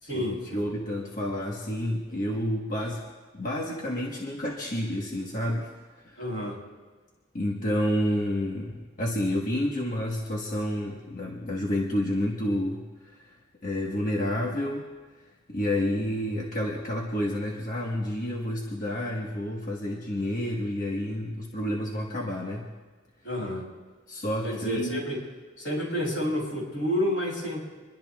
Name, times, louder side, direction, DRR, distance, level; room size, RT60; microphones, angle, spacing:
voice 1, 0.0-0.7 6.2-6.6 23.2-23.7 24.4-25.2 25.6-27.8, equal, 80° left, -1 dB, 6.3 m, -30 dB
voice 2, 0.5-3.1 3.3-5.7 6.0-6.3 7.3-14.9 15.5-22.7 24.1-25.0, left 1 dB, 45° left, -1 dB, 1.3 m, -30 dB
26.0 x 21.5 x 2.4 m, 1.4 s
head